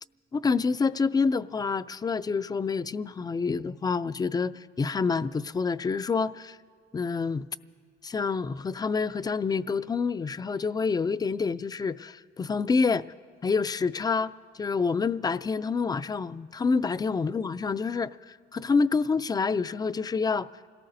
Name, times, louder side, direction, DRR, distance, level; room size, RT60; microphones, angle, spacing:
voice 1, 0.3-6.6 6.9-7.5 8.0-13.0 13.4-14.3 14.6-20.5, left 4 dB, 20° left, 14 dB, 0.3 m, -27 dB
27.5 x 18.0 x 2.7 m, 2.1 s
cardioid pair, 90°, 20 cm